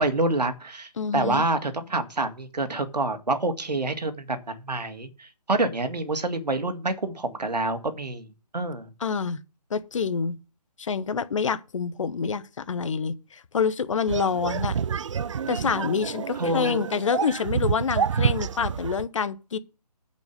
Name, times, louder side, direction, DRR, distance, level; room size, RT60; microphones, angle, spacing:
voice 1, 0.0-8.3 8.5-8.9 16.4-16.9, right 2 dB, 75° right, 2.0 m, -27 dB
voice 2, 1.0-1.5 9.0-9.4 9.7-10.4 10.8-14.7 15.5-19.6, left 6 dB, 50° left, 1.0 m, -27 dB
sound 1, 14.1-19.0, right 7 dB, 50° right, 0.4 m, -28 dB
9.1 x 5.3 x 6.8 m
figure-of-eight pair, 145°, 21 cm